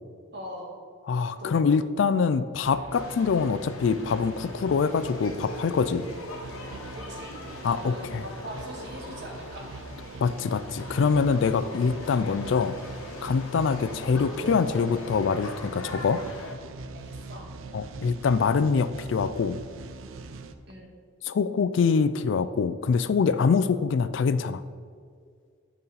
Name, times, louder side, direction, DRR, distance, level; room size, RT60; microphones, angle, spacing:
voice 1, 0.3-0.8 1.4-1.7 6.9-7.3 7.6-9.7 16.9-17.4 20.7-20.9, equal, 55° right, -2 dB, 1.6 m, -41 dB
voice 2, 1.1-6.1 7.6-8.2 10.2-12.8 13.2-16.2 17.7-19.6 21.2-24.6, left 5 dB, 60° left, 13 dB, 0.3 m, -24 dB
sound 1, 2.6-20.5, right 3 dB, 70° right, 0.5 m, -43 dB
sound 2, 2.9-16.5, left 1 dB, 80° left, 1.0 m, -41 dB
9.1 x 5.4 x 4.1 m, 2.1 s
head